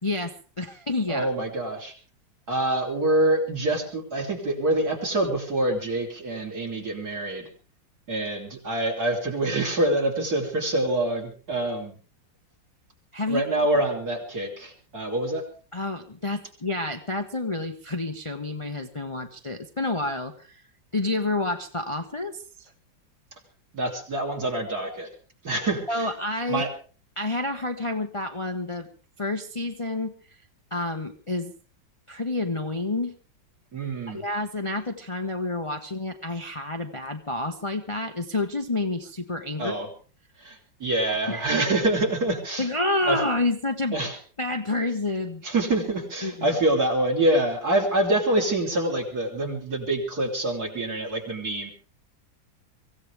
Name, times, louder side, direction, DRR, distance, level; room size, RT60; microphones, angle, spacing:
voice 1, 0.0-1.3 13.1-13.4 15.7-20.6 20.9-22.7 25.9-26.7 27.2-28.9 29.2-30.4 30.7-31.5 32.1-33.1 34.1-39.7 41.1-41.5 42.6-44.0 44.4-45.4 46.2-46.6, left 2 dB, 25° left, 5 dB, 0.8 m, -29 dB
voice 2, 1.1-1.9 2.5-7.4 8.1-12.0 13.3-15.4 23.7-25.1 25.4-26.1 26.5-26.7 33.7-34.2 39.6-39.9 40.4-42.7 43.1-43.2 43.9-44.1 45.4-51.7, right 1 dB, 50° right, 0 dB, 4.1 m, -26 dB
24.5 x 16.0 x 3.5 m, 0.39 s
omnidirectional pair, 2.0 m